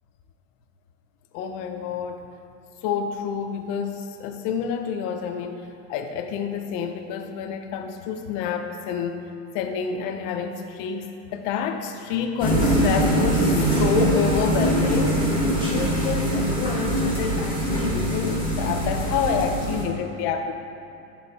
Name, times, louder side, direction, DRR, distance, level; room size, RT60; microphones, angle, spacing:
voice 1, 1.3-2.3 2.8-9.2 9.5-20.5, left 6 dB, 40° left, 5 dB, 0.6 m, -28 dB
sound 1, 12.4-19.8, right 1 dB, 10° right, 1.2 m, -23 dB
10.0 x 3.9 x 4.1 m, 2.9 s
supercardioid pair, 140°, 50 cm